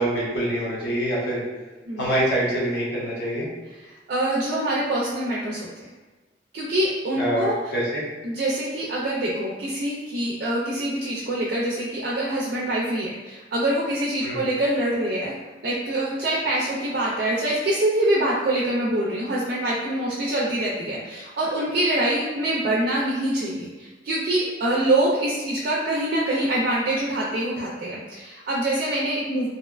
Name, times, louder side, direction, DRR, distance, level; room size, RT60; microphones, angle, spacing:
voice 1, 0.0-1.4 2.0-3.5 7.2-8.0 14.2-14.4, right 1 dB, 65° left, -6 dB, 0.8 m, -25 dB
voice 2, 4.1-5.9 6.5-7.6 8.2-15.3 15.6-29.5, right 1 dB, 55° right, -4 dB, 0.3 m, -25 dB
2.6 x 2.1 x 2.3 m, 1.2 s
head